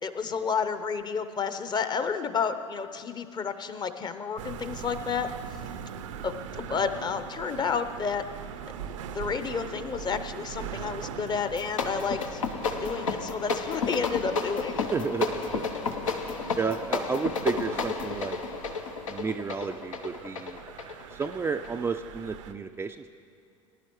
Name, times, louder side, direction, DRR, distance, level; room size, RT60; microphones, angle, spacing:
voice 1, 0.0-5.3 6.2-8.2 9.1-12.4 12.7-14.9, left 6 dB, 25° left, 10 dB, 0.7 m, -31 dB
sound 1, 4.4-22.5, right 8 dB, 70° right, 0.6 m, -42 dB
sound 2, 11.5-21.8, left 4 dB, 80° left, 0.9 m, -32 dB
voice 2, 14.9-15.6 16.1-16.2 16.5-18.4 19.1-20.6 21.1-23.2, right 5 dB, 15° right, 5 dB, 0.3 m, -32 dB
19.5 x 11.0 x 3.1 m, 2.4 s
hypercardioid pair, 80°, 17 cm